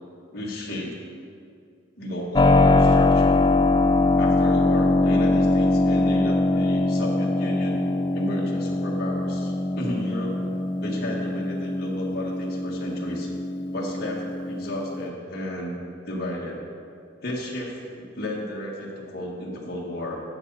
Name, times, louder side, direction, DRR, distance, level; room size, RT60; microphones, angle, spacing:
voice 1, 0.3-0.9 2.0-3.4 4.2-7.8 8.1-10.4 10.8-13.3 13.7-16.6 17.2-20.2, left 1 dB, 50° left, -4 dB, 1.8 m, -33 dB
Keyboard (musical), 2.4-15.1, left 2 dB, 20° left, 0.3 m, -22 dB
12.5 x 8.1 x 4.1 m, 2.4 s
head